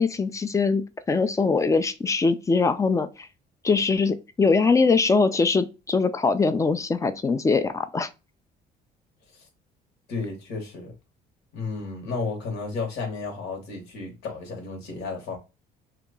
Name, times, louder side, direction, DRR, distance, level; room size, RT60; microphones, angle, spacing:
voice 1, 0.0-3.3 3.6-8.1, left 4 dB, 20° left, 0.4 m, -22 dB
voice 2, 10.1-10.9 11.5-15.4, left 4 dB, 80° left, 1.1 m, -33 dB
2.9 x 2.2 x 3.6 m
cardioid pair, 110°, 17 cm